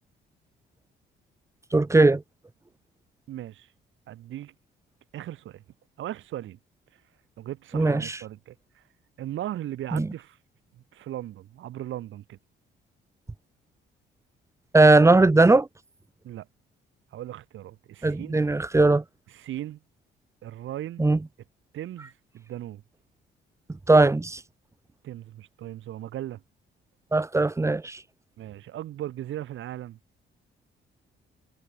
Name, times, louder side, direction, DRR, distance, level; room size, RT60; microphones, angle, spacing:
voice 1, 1.7-2.2 7.7-8.2 9.9-10.1 14.7-15.7 18.0-19.0 21.0-21.2 23.9-24.4 27.1-28.0, right 2 dB, 15° right, 0.8 m, -19 dB
voice 2, 3.3-3.7 4.1-4.5 5.1-5.6 6.0-6.6 6.9-7.0 7.4-8.8 9.2-10.4 10.7-12.4 16.2-16.5 17.1-18.4 19.3-19.8 20.4-21.1 21.7-22.8 25.0-26.4 28.4-30.0, right 13 dB, 80° right, 4.3 m, -37 dB
cardioid pair, 90°, 20 cm